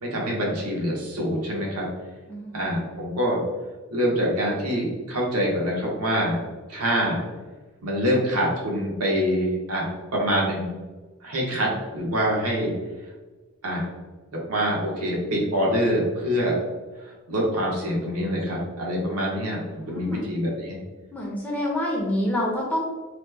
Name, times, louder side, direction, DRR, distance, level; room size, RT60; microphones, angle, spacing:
voice 1, 0.0-1.9 2.5-3.4 3.9-6.4 6.7-7.2 7.8-10.7 11.2-12.7 13.6-13.9 14.5-16.6 17.0-20.8, equal, 85° right, -3 dB, 1.0 m, -25 dB
voice 2, 2.3-2.7 19.8-20.3 21.1-22.8, left 1 dB, 5° left, -3 dB, 0.5 m, -27 dB
3.0 x 2.1 x 3.3 m, 1.3 s
head